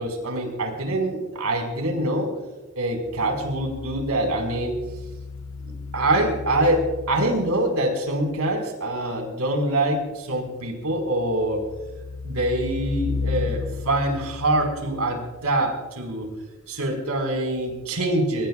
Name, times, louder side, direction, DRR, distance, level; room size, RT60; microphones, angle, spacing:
voice 1, 0.0-2.4 2.8-4.8 5.6-11.6 12.2-16.3 16.7-18.5, right 1 dB, 85° right, 3 dB, 5.2 m, -25 dB
sound 1, 3.1-7.7 11.0-15.7 17.8-17.9, left 4 dB, 65° left, 0.7 m, -34 dB
25.5 x 21.5 x 2.5 m, 1.2 s
head